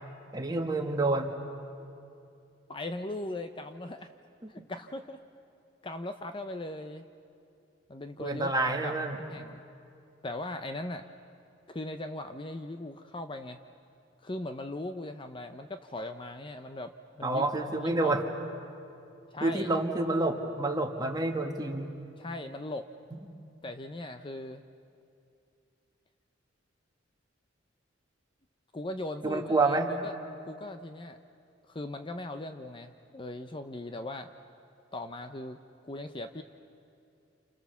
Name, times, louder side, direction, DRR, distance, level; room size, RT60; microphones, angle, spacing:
voice 1, 0.3-1.3 4.4-4.6 8.2-9.2 17.2-18.2 19.4-21.9 23.1-23.2 29.2-29.9, right 2 dB, 20° right, 2 dB, 2.0 m, -28 dB
voice 2, 2.7-4.1 4.5-5.2 5.8-7.0 7.9-8.9 9.3-9.6 10.2-11.1 11.7-13.6 14.2-17.4 17.8-18.2 19.3-19.7 22.2-22.9 23.6-24.6 28.7-30.1 30.4-31.2 31.7-34.3 34.9-35.6 35.8-36.4, left 2 dB, 25° left, 8 dB, 0.7 m, -39 dB
29.5 x 28.5 x 7.1 m, 2.5 s
head